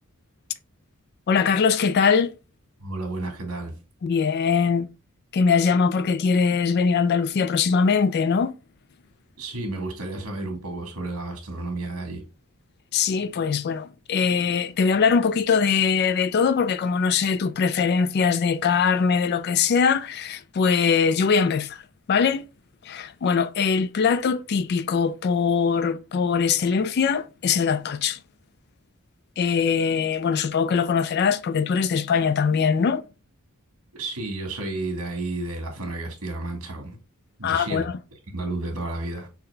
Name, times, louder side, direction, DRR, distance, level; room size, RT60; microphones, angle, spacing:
voice 1, 1.3-2.3 4.0-4.9 5.3-8.5 12.9-21.8 22.1-22.5 22.8-28.2 29.4-33.0 37.4-37.9, left 6 dB, 45° left, 0.3 m, -22 dB
voice 2, 2.8-3.7 9.4-12.2 33.9-37.0 37.4-37.8 38.3-39.3, right 2 dB, 75° right, 1.6 m, -31 dB
5.7 x 2.8 x 3.2 m
head